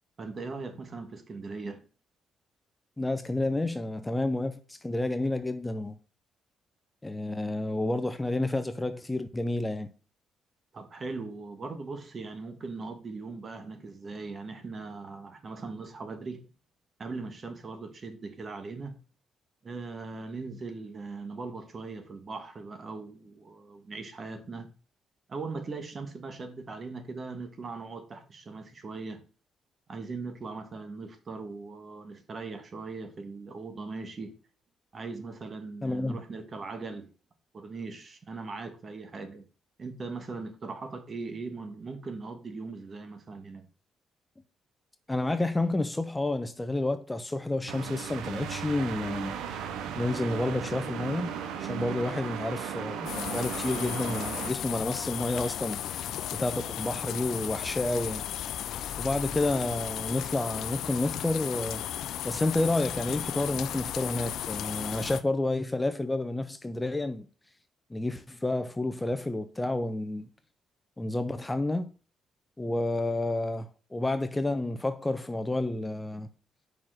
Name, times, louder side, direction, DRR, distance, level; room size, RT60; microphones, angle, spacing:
voice 1, 0.2-1.8 10.7-16.4 17.0-19.0 19.6-24.7 25.3-29.2 29.9-34.3 34.9-37.1 37.5-39.4 39.8-43.7, right 3 dB, 40° right, 1.5 m, -39 dB
voice 2, 3.0-6.0 7.0-9.9 35.8-36.2 45.1-49.4 50.0-51.3 51.6-58.2 59.0-61.8 62.2-67.3 67.9-70.3 71.0-71.9 72.6-76.3, left 2 dB, 15° left, 0.6 m, -30 dB
sound 1, 47.7-54.5, right 8 dB, 90° right, 0.9 m, -36 dB
sound 2, 53.0-65.2, left 11 dB, 80° left, 0.5 m, -35 dB
5.5 x 4.9 x 6.4 m
cardioid pair, 90°, 0 cm